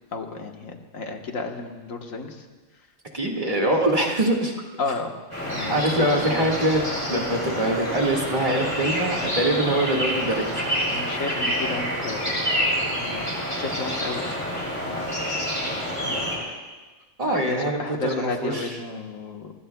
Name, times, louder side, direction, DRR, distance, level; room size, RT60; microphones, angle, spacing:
voice 1, 0.1-2.5 3.6-3.7 4.8-5.1 5.4-6.5 10.9-13.2 13.5-15.5 16.0-16.3 17.3-19.5, left 3 dB, 85° left, 3 dB, 1.7 m, -33 dB
voice 2, 3.1-4.5 5.7-6.8 7.1-10.5 10.9-11.0 17.2-18.7, right 1 dB, 25° right, -2 dB, 1.8 m, -23 dB
sound 1, 5.3-16.4, equal, 10° left, 6.9 m, -27 dB
24.5 x 20.5 x 2.3 m, 1.3 s
omnidirectional pair, 1.4 m